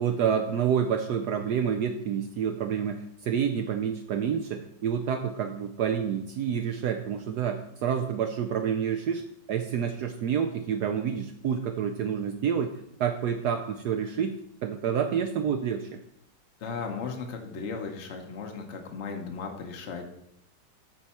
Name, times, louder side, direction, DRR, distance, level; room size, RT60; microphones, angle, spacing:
voice 1, 0.0-9.2 9.5-14.4 14.6-16.0, right 8 dB, 70° right, 5 dB, 1.1 m, -28 dB
voice 2, 16.6-20.0, left 5 dB, 50° left, 3 dB, 0.9 m, -36 dB
13.0 x 4.6 x 4.2 m, 0.75 s
omnidirectional pair, 2.0 m